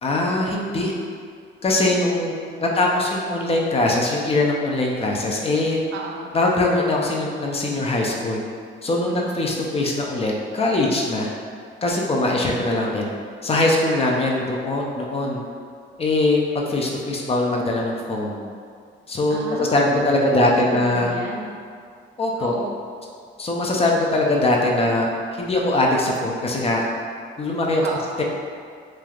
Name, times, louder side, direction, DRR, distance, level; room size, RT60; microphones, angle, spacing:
voice 1, 0.0-0.9 1.6-2.3 2.6-5.8 6.3-8.4 8.8-11.3 11.8-13.1 13.4-15.4 16.0-16.4 16.7-18.4 19.1-21.1 22.2-22.5 23.4-26.8 27.4-27.8 28.2-28.3, left 2 dB, 30° left, -1 dB, 0.4 m, -21 dB
voice 2, 2.6-3.1 5.9-6.4 9.1-9.4 12.3-12.4 13.9-14.1 19.3-21.5 22.4-22.7 27.8-28.2, right 4 dB, 70° right, 0 dB, 0.4 m, -33 dB
3.1 x 2.4 x 2.3 m, 2.1 s
cardioid pair, 90°, 20 cm